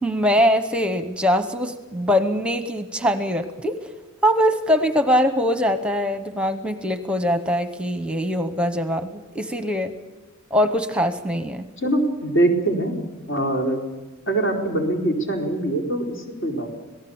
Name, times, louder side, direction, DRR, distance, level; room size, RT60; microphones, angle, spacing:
voice 1, 0.0-3.9 4.2-9.9 10.5-11.7, equal, 5° right, 9 dB, 0.9 m, -22 dB
voice 2, 11.8-12.9 13.3-13.8 14.3-16.7, right 2 dB, 65° left, 1 dB, 4.4 m, -23 dB
26.5 x 18.0 x 7.2 m, 1.2 s
head